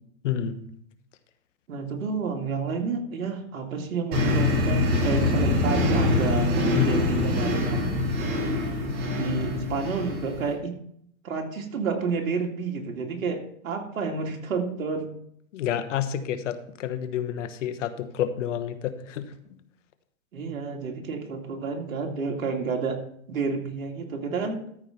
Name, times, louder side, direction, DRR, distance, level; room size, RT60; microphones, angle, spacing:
voice 1, 0.2-0.6 6.7-7.0 15.5-19.3, left 9 dB, 60° left, 11 dB, 1.2 m, -29 dB
voice 2, 1.7-6.5 6.8-7.8 9.1-10.7 11.2-15.1 20.3-23.0 23.3-24.6, right 4 dB, 80° right, 2 dB, 2.5 m, -30 dB
sound 1, 4.1-10.5, left 2 dB, 30° right, 5.1 m, -24 dB
13.5 x 4.9 x 5.7 m, 0.69 s
hypercardioid pair, 145°, 41 cm